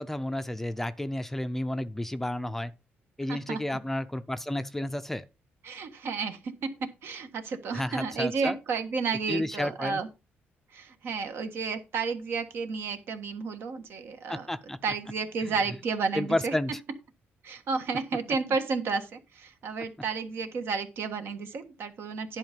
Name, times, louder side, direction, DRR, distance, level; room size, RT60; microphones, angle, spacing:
voice 1, 0.0-2.7 3.2-5.2 7.7-8.6 9.3-10.0 14.3-14.8 15.4-15.5 16.1-16.8, left 1 dB, 5° left, 0.5 m, -31 dB
voice 2, 3.3-3.8 5.6-10.1 10.7-14.5 14.8-16.5 17.4-22.4, right 4 dB, 65° right, 1.4 m, -32 dB
11.0 x 4.7 x 5.3 m
cardioid pair, 135°, 4 cm